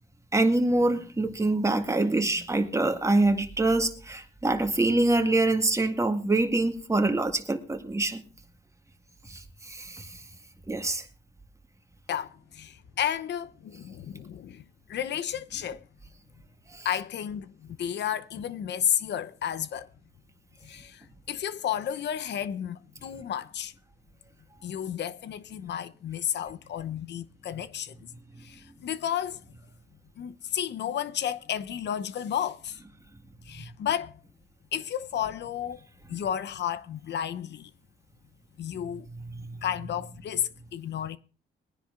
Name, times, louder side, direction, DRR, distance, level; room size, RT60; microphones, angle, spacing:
voice 1, 0.3-8.2 9.3-10.1 10.7-11.0 16.7-16.9, right 2 dB, 15° right, 1.9 m, -25 dB
voice 2, 12.1-15.8 16.8-19.9 20.6-23.7 24.6-28.1 28.4-29.4 30.2-32.8 33.5-34.2 34.7-35.8 36.1-37.7 38.6-39.1 39.6-41.2, left 9 dB, 60° left, 0.8 m, -32 dB
22.0 x 10.0 x 2.6 m
cardioid pair, 90°, 20 cm